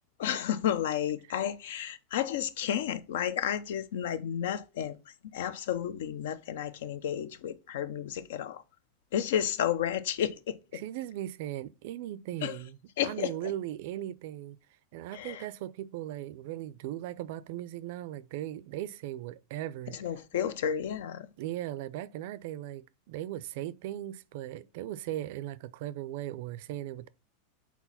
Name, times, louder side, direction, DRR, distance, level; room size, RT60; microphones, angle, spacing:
voice 1, 0.2-8.6 9.1-10.8 12.4-12.6 13.0-13.5 15.1-15.4 19.9-21.3, left 9 dB, 75° left, 0.7 m, -32 dB
voice 2, 10.7-12.8 13.0-14.6 14.9-20.0 21.4-27.1, right 13 dB, 55° right, 0.4 m, -38 dB
4.6 x 4.1 x 5.7 m
supercardioid pair, 165°, 0 cm